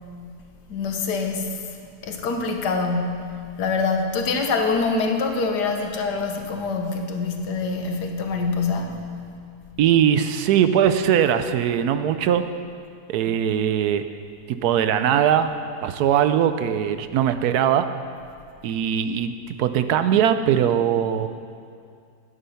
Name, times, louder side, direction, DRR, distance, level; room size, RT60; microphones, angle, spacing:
voice 1, 0.7-1.6 2.0-9.0, left 4 dB, 90° left, 4 dB, 1.7 m, -25 dB
voice 2, 9.8-12.4 13.1-14.0 14.5-15.5 15.8-17.9 18.6-21.3, right 9 dB, 75° right, 10 dB, 1.1 m, -20 dB
11.0 x 9.9 x 5.7 m, 2.3 s
omnidirectional pair, 1.7 m